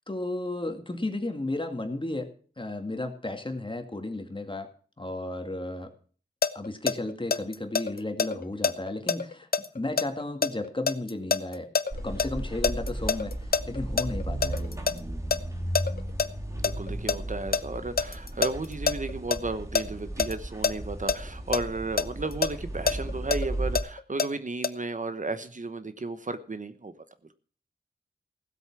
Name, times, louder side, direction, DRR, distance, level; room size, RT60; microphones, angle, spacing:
voice 1, 0.1-4.7 5.0-5.9 6.5-9.5 9.7-11.7 12.0-14.8, left 2 dB, 30° left, 6 dB, 2.1 m, -34 dB
sound 1, 6.4-12.3 12.6-15.0 15.3-15.4 15.8-16.3 16.6-19.8 20.2-20.3 20.6-20.7 21.1-21.2 21.5-24.3 24.6-24.7, left 5 dB, 60° left, 0.8 m, -26 dB
sound 2, 11.9-23.8, right 1 dB, 15° right, 2.6 m, -35 dB
voice 2, 16.5-26.9, right 3 dB, 45° right, 11 dB, 1.0 m, -34 dB
16.5 x 8.1 x 6.0 m, 0.42 s
wide cardioid pair, 80°, 17 cm